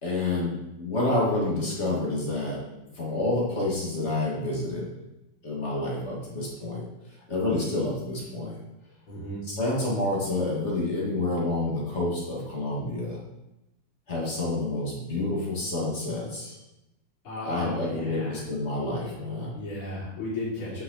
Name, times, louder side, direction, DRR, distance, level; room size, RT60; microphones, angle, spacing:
voice 1, 0.0-2.6 2.9-4.9 5.4-6.8 7.3-8.6 9.5-13.2 14.1-16.6 17.4-19.5, left 2 dB, 30° left, -4 dB, 2.3 m, -28 dB
voice 2, 9.1-9.4 17.2-18.4 19.5-20.8, left 1 dB, 90° left, -8 dB, 4.0 m, -35 dB
9.7 x 5.7 x 4.1 m, 0.96 s
omnidirectional pair, 2.3 m